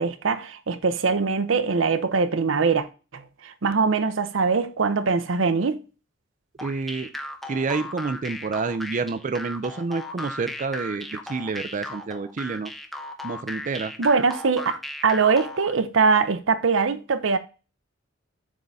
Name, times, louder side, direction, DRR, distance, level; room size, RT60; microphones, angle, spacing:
voice 1, 0.0-2.9 3.1-5.8 14.0-17.4, right 4 dB, 80° right, 0.7 m, -22 dB
sound 1, 6.6-15.7, left 1 dB, ahead, 0.7 m, -36 dB
voice 2, 6.6-7.1 7.5-12.7 13.2-13.9, right 4 dB, 40° right, 0.4 m, -28 dB
7.5 x 3.6 x 4.0 m
head